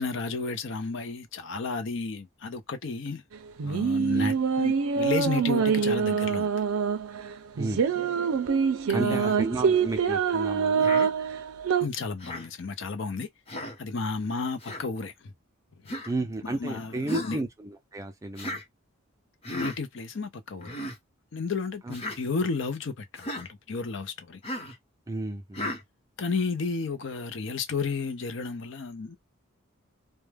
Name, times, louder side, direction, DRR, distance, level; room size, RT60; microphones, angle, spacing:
voice 1, 0.0-3.2 3.6-6.5 8.9-9.4 11.8-13.3 13.8-15.3 15.8-15.9 16.4-17.4 19.5-20.8 21.3-24.4 26.2-29.2, left 4 dB, 60° left, 0.5 m, -32 dB
sound 1, 3.3-11.9, right 6 dB, 85° right, 0.5 m, -25 dB
voice 2, 8.9-10.9 16.1-18.6 21.9-22.0 25.1-25.7, right 2 dB, 15° right, 0.4 m, -33 dB
Human voice, 10.8-11.1 12.2-12.5 13.5-13.8 14.6-14.8 15.9-16.1 17.1-17.4 18.4-18.6 19.4-19.8 20.6-21.0 21.9-22.2 23.2-23.5 24.4-24.7 25.5-25.8, left 1 dB, 30° left, 0.8 m, -34 dB
2.2 x 2.1 x 3.2 m
head